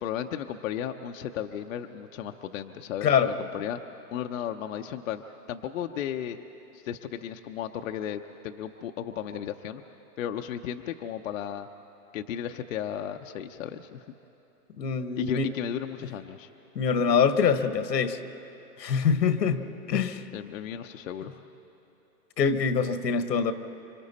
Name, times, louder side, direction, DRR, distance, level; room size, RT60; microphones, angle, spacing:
voice 1, 0.0-3.8 4.1-5.2 5.5-6.4 6.7-9.8 10.2-11.7 12.1-14.0 15.2-16.5 20.3-21.5, left 9 dB, 55° left, 6 dB, 0.8 m, -35 dB
voice 2, 14.8-15.5 16.7-18.2 18.8-20.2 22.4-23.5, left 6 dB, 80° left, 10 dB, 1.4 m, -24 dB
26.5 x 25.5 x 4.2 m, 3.0 s
hypercardioid pair, 145°, 49 cm